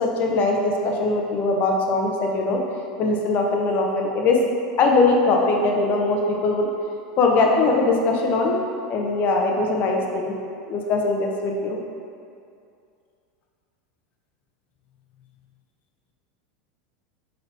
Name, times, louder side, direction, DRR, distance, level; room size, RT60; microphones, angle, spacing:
voice 1, 0.0-2.6 3.0-4.4 4.8-6.7 7.2-8.6 8.9-10.4 10.7-11.8, left 3 dB, 45° left, 1 dB, 0.5 m, -21 dB
3.8 x 3.3 x 2.6 m, 2.4 s
hypercardioid pair, 110°, 4 cm